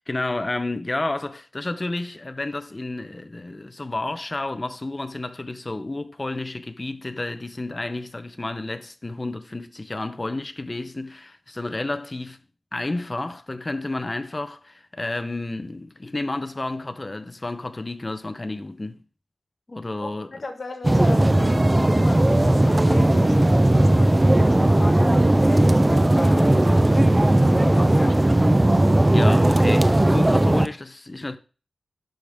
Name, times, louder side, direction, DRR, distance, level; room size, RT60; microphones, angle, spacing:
voice 1, 0.1-12.4 12.7-19.0 19.7-20.3 29.1-31.4, left 2 dB, 25° left, 0.7 m, -31 dB
voice 2, 20.0-28.2, left 2 dB, 45° left, 1.4 m, -35 dB
sound 1, 20.8-30.7, right 1 dB, 20° right, 0.5 m, -17 dB
11.5 x 5.1 x 3.5 m
wide cardioid pair, 125°, 0 cm